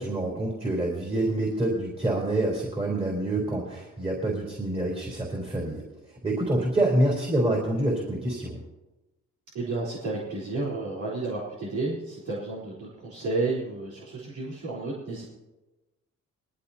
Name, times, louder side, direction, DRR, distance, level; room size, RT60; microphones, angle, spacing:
voice 1, 0.0-8.6, right 1 dB, 20° right, -2 dB, 4.0 m, -27 dB
voice 2, 9.5-15.2, right 3 dB, 70° right, -7 dB, 4.1 m, -31 dB
20.5 x 15.0 x 2.9 m, 1.1 s
cardioid pair, 90°, 30 cm